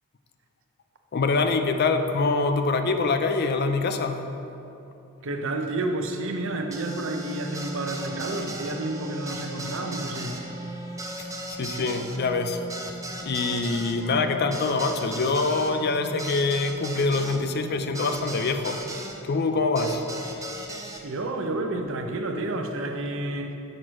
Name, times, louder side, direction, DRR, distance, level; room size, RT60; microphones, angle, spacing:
voice 1, 1.1-4.2 11.2-12.7 13.2-18.8 19.2-20.0, left 3 dB, 45° left, 7 dB, 0.4 m, -25 dB
voice 2, 5.2-10.4 21.0-23.6, right 2 dB, 60° right, 4 dB, 0.6 m, -30 dB
sound 1, 6.7-19.2 19.8-21.0, right 1 dB, 15° right, 0.5 m, -37 dB
6.5 x 4.5 x 6.2 m, 2.9 s
head